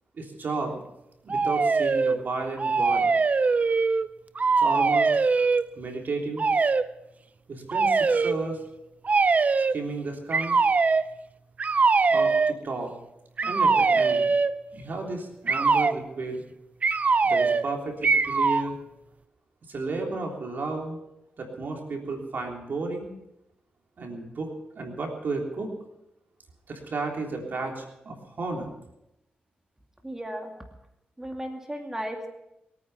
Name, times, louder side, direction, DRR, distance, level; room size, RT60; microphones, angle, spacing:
voice 1, 0.2-0.8 1.2-3.1 4.6-5.1 5.7-6.5 7.5-8.6 9.7-10.6 12.1-12.9 13.4-14.3 14.7-16.4 17.2-18.7 19.7-21.0 21.4-23.1 24.0-25.7 26.7-28.7, right 3 dB, 65° right, 1 dB, 3.4 m, -33 dB
sound 1, 1.3-2.2 2.6-4.1 4.3-5.6 6.4-6.9 7.7-8.3 9.0-9.8 10.3-11.1 11.6-12.5 13.4-14.6 15.5-16.0 16.8-17.7 18.0-18.7, right 4 dB, 45° right, 0.6 m, -22 dB
voice 2, 30.0-30.5 31.2-32.3, equal, 15° right, 2 dB, 2.4 m, -35 dB
22.5 x 9.5 x 5.7 m, 0.87 s
cardioid pair, 70°, 4 cm